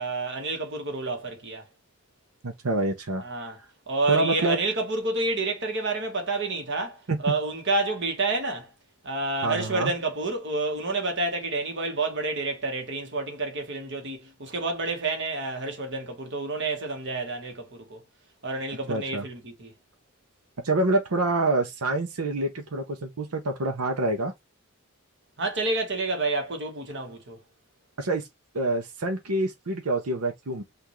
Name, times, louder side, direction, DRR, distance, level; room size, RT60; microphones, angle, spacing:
voice 1, 0.0-1.6 3.2-3.6 3.9-8.7 9.0-18.0 18.4-19.7 25.4-27.4, right 3 dB, 55° right, 1.5 m, -29 dB
voice 2, 2.4-3.2 4.1-4.6 7.1-7.3 9.4-9.9 18.9-19.2 20.6-24.3 28.0-28.3 28.5-30.6, right 2 dB, 85° right, 0.8 m, -26 dB
5.8 x 2.6 x 3.1 m
head